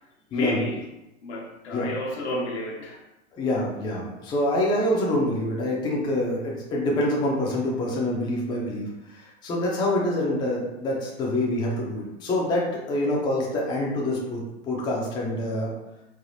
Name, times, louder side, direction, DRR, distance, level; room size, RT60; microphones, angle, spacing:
voice 1, 0.3-0.8 1.2-3.0, left 1 dB, 75° left, 0 dB, 0.8 m, -31 dB
voice 2, 3.3-15.7, left 1 dB, 15° left, -3 dB, 0.4 m, -26 dB
3.3 x 2.0 x 2.5 m, 0.94 s
hypercardioid pair, 115°, 34 cm